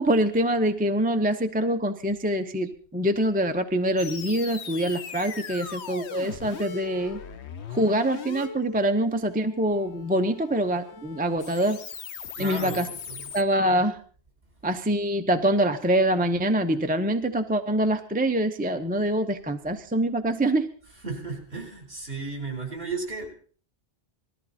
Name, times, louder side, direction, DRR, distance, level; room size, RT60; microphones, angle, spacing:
voice 1, 0.0-7.2 7.7-11.8 12.4-12.9 13.3-14.0 14.6-20.7, right 1 dB, 10° right, 6 dB, 0.8 m, -25 dB
sound 1, 4.0-13.4, left 6 dB, 80° left, 1.2 m, -39 dB
voice 2, 12.4-13.3 21.0-23.3, right 3 dB, 55° right, 3 dB, 4.8 m, -34 dB
19.5 x 14.0 x 4.3 m, 0.43 s
omnidirectional pair, 1.1 m